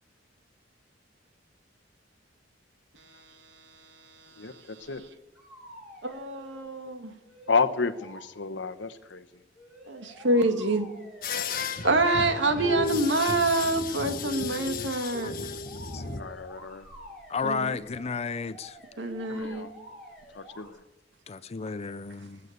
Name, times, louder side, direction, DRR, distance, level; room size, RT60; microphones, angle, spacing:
voice 1, 3.8-4.9 6.0-7.1 9.9-10.9 11.3-11.4 11.8-15.3 17.4-17.7 19.0-19.7, right 2 dB, 85° right, 2.1 m, -27 dB
sound 1, 4.8-5.0 5.3-6.6 7.2-8.3 9.5-11.7 15.6-20.7, equal, ahead, 5.9 m, -49 dB
voice 2, 7.5-9.2 16.2-16.8 19.3-19.7 20.3-20.8, left 4 dB, 80° left, 1.0 m, -30 dB
sound 2, 11.2-16.2, left 4 dB, 50° left, 1.4 m, -34 dB
voice 3, 17.3-18.8 21.3-22.4, left 5 dB, 35° left, 0.5 m, -32 dB
20.5 x 8.4 x 8.3 m
head